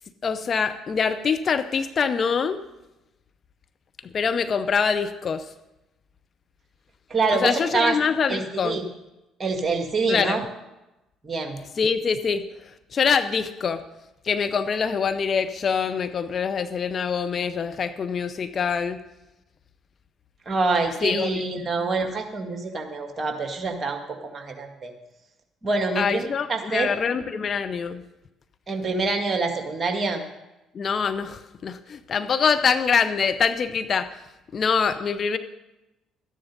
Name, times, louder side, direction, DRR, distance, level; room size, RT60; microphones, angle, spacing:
voice 1, 0.2-2.6 4.0-5.5 7.3-8.8 10.1-10.4 11.8-12.4 12.9-13.8 14.2-19.0 21.0-21.6 26.0-28.0 30.7-34.1 34.5-35.4, left 6 dB, 40° left, 10 dB, 0.6 m, -24 dB
voice 2, 7.1-8.0 8.3-8.8 9.4-10.4 11.2-11.6 20.5-24.9 25.6-26.9 28.7-30.2, right 3 dB, 30° right, 5 dB, 1.9 m, -26 dB
13.0 x 10.0 x 5.4 m, 0.96 s
figure-of-eight pair, 50°, 0 cm